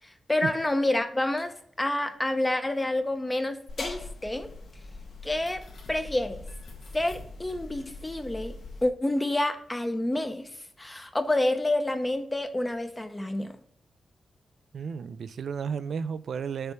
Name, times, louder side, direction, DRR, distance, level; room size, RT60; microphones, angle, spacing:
voice 1, 0.3-4.5 5.2-5.6 5.9-6.4 6.9-8.5 8.8-10.5 10.8-13.6, left 1 dB, 15° left, 0.7 m, -28 dB
sound 1, 3.7-8.9, left 2 dB, 80° left, 1.7 m, -42 dB
voice 2, 14.7-16.7, right 6 dB, 75° right, 0.3 m, -33 dB
6.6 x 3.4 x 5.8 m
wide cardioid pair, 125°, 0 cm